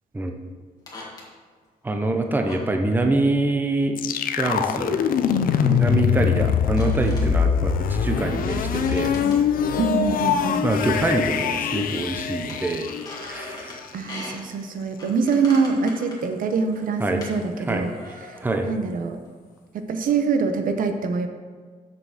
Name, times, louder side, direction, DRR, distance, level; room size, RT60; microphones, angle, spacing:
sound 1, 0.9-1.3 2.5-2.7 4.5-4.6 5.3-5.4 6.6-7.3 8.5-10.0 10.5-10.6 10.9-11.0 11.4-12.1 12.5-13.8 14.1-14.4 15.0-17.4 17.7-18.6 19.2-19.4 20.1-20.2, left 1 dB, 25° left, 1.9 m, -40 dB
voice 1, 1.8-4.0 4.4-5.0 5.6-9.1 10.6-12.9 13.2-13.8 17.0-17.2 17.7-17.8 18.4-18.7, right 2 dB, 15° right, 4 dB, 0.7 m, -25 dB
sound 2, 4.0-13.8, left 7 dB, 80° left, 0.5 m, -23 dB
voice 2, 9.8-10.6 13.9-17.9 18.2-19.2 19.7-21.3, right 5 dB, 75° right, 7 dB, 0.8 m, -24 dB
6.8 x 6.7 x 6.4 m, 1.5 s
wide cardioid pair, 160°, 14 cm